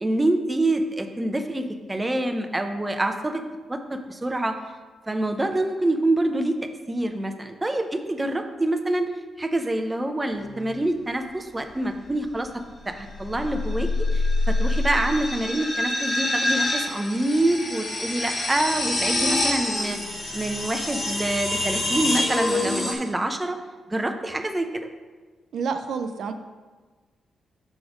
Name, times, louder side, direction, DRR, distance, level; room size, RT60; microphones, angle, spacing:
voice 1, 0.0-3.4 3.7-4.6 5.1-6.6 6.9-9.1 9.4-12.5 12.9-20.0 20.3-23.6 23.9-24.9, right 1 dB, 15° right, 6 dB, 0.6 m, -26 dB
sound 1, 10.3-10.7 12.9-22.9, left 2 dB, 40° left, 1.6 m, -26 dB
voice 2, 25.5-26.3, right 5 dB, 75° right, 7 dB, 0.4 m, -28 dB
6.0 x 5.0 x 4.9 m, 1.3 s
cardioid pair, 100°, 0 cm